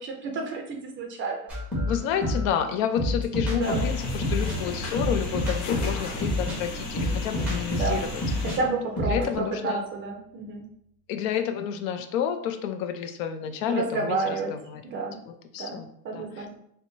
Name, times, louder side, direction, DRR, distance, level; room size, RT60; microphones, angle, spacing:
voice 1, 0.0-1.4 3.5-3.9 7.8-8.1 8.6-10.6 13.7-14.5 14.8-15.2 15.6-15.8 16.0-16.5, right 3 dB, 30° right, 2 dB, 0.5 m, -30 dB
sound 1, 1.5-8.6 8.8-9.4, left 2 dB, 5° right, 1.1 m, -28 dB
voice 2, 1.9-8.2 9.0-9.8 11.1-14.8 15.3-15.9 16.1-16.5, left 8 dB, 70° left, 8 dB, 0.5 m, -30 dB
sound 2, 3.6-8.6, left 2 dB, 85° left, 1.0 m, -35 dB
Bowed string instrument, 8.9-10.2, right 1 dB, 25° left, 0.6 m, -43 dB
4.3 x 2.1 x 2.7 m, 0.74 s
supercardioid pair, 135°, 43 cm